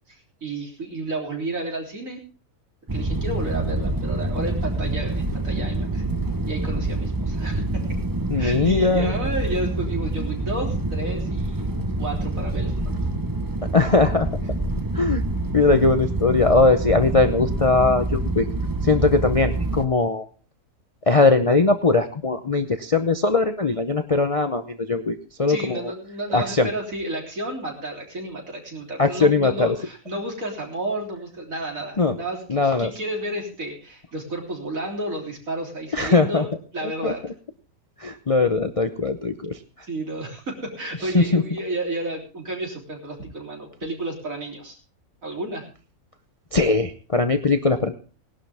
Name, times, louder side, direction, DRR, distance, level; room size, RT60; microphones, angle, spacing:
voice 1, 0.1-2.2 2.9-6.0 6.5-7.8 8.4-11.7 12.0-12.9 25.5-37.2 39.8-44.8 45.2-45.7, right 1 dB, 60° right, 0 dB, 4.0 m, -31 dB
sound 1, 2.9-19.8, right 2 dB, 20° right, 0.8 m, -26 dB
voice 2, 8.3-9.1 13.7-14.3 14.9-15.2 15.5-18.5 18.8-20.2 21.1-25.8 26.3-26.7 29.0-29.7 32.0-32.2 32.5-32.9 35.9-36.4 37.0-37.1 38.0-39.6 41.1-41.4 46.5-47.9, left 3 dB, 35° left, 7 dB, 0.6 m, -20 dB
19.0 x 11.5 x 3.5 m, 0.36 s
omnidirectional pair, 1.6 m